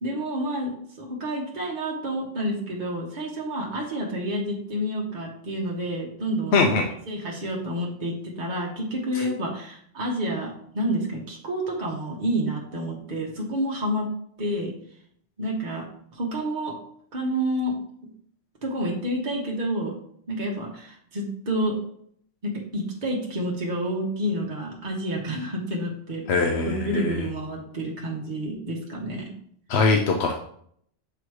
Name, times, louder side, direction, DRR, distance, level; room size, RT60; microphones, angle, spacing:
voice 1, 0.0-6.6 7.1-14.1 14.4-14.7 15.4-15.9 16.1-16.8 17.1-17.8 18.6-19.9 20.3-21.8 22.4-26.3 26.6-29.3, right 1 dB, 40° right, -2 dB, 1.2 m, -29 dB
voice 2, 6.5-6.9 9.1-9.2 26.3-27.3 29.7-30.3, left 3 dB, 65° left, 2 dB, 0.9 m, -22 dB
6.9 x 3.0 x 4.7 m, 0.64 s
omnidirectional pair, 1.3 m